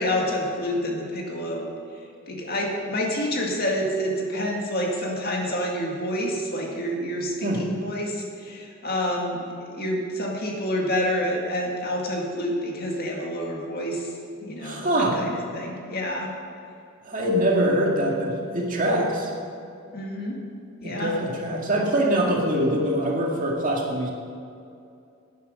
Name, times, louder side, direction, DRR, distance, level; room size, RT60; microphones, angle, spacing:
voice 1, 0.0-1.7 2.3-14.1 14.4-16.3 19.9-20.4 20.8-21.2, equal, 45° left, -1 dB, 2.0 m, -28 dB
voice 2, 14.6-15.2 17.0-19.3 20.8-24.1, right 1 dB, 40° right, -2 dB, 2.0 m, -23 dB
11.5 x 9.4 x 6.5 m, 2.5 s
head